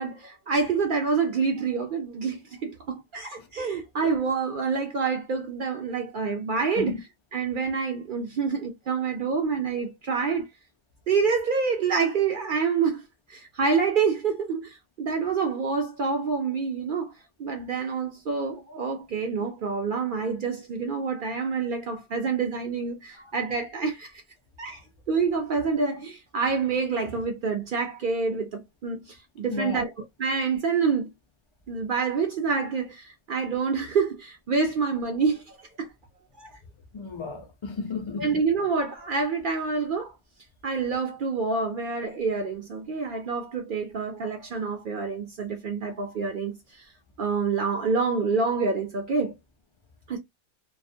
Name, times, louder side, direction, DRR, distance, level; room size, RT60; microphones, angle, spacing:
voice 1, 0.0-7.0 7.3-10.5 11.1-13.0 13.3-17.1 17.4-24.2 24.6-24.8 25.1-31.1 31.7-35.9 36.4-36.5 38.2-40.1 40.6-46.9 47.2-49.3 50.1-50.2, right 5 dB, 60° right, 0.5 m, -27 dB
voice 2, 29.5-29.9 36.9-38.4, left 4 dB, 40° left, 0.4 m, -33 dB
2.3 x 2.1 x 2.5 m
omnidirectional pair, 1.2 m